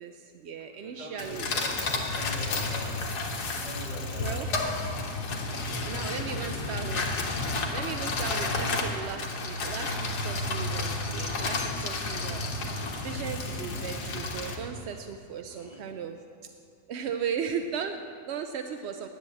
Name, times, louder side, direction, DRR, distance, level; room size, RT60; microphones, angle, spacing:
voice 1, 0.0-1.5 4.1-4.5 5.8-7.1 7.7-12.7 13.0-16.2 16.9-19.1, right 7 dB, 65° right, 6 dB, 0.6 m, -36 dB
voice 2, 0.8-3.0 3.6-4.9 6.2-6.8 15.5-15.9, equal, 25° right, -4 dB, 2.5 m, -44 dB
sound 1, 1.2-14.6, left 3 dB, 90° left, 1.9 m, -31 dB
10.5 x 8.2 x 8.4 m, 2.3 s
omnidirectional pair, 1.7 m